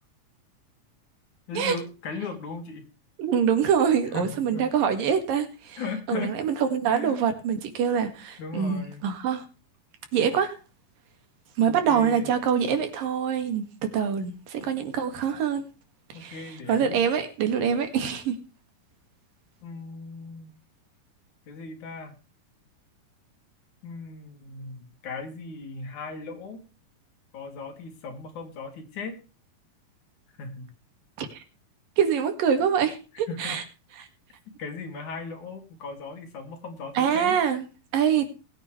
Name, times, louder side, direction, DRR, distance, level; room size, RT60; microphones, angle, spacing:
voice 1, 1.5-2.9 4.1-4.7 5.8-6.3 6.9-7.2 8.4-9.0 11.7-12.3 16.1-17.0 19.6-20.5 21.5-22.2 23.8-26.6 27.3-29.2 30.4-30.7 33.3-33.6 34.6-37.4, left 4 dB, 60° left, 3.8 m, -37 dB
voice 2, 3.2-5.8 6.1-9.4 10.1-10.6 11.6-15.6 16.1-16.4 16.7-18.4 31.2-31.3 32.0-33.6 34.0-34.1 37.0-37.6 37.9-38.3, right 7 dB, 85° right, 3.7 m, -25 dB
20.5 x 9.1 x 3.3 m
omnidirectional pair, 3.9 m